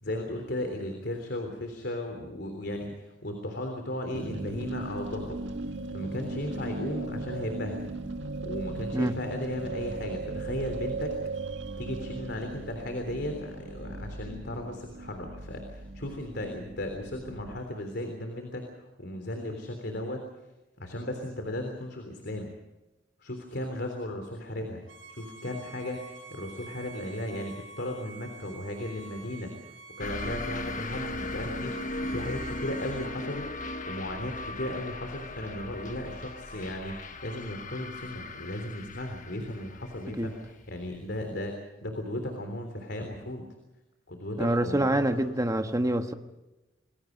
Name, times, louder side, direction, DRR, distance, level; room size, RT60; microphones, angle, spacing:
voice 1, 0.0-5.4 5.9-7.9 8.4-11.1 11.8-20.2 20.8-22.5 23.2-24.8 25.1-29.5 30.0-33.5 33.9-41.5 41.8-43.4 44.1-45.3, left 1 dB, 60° left, 4 dB, 3.6 m, -36 dB
sound 1, 4.1-17.6, right 3 dB, 65° right, 2.0 m, -37 dB
Bowed string instrument, 24.9-33.1, right 4 dB, 90° right, 4.6 m, -48 dB
sound 2, 30.0-41.2, left 2 dB, 40° left, 1.4 m, -38 dB
voice 2, 44.4-46.1, right 1 dB, 15° right, 7 dB, 1.4 m, -26 dB
28.0 x 21.5 x 5.3 m, 1.0 s
head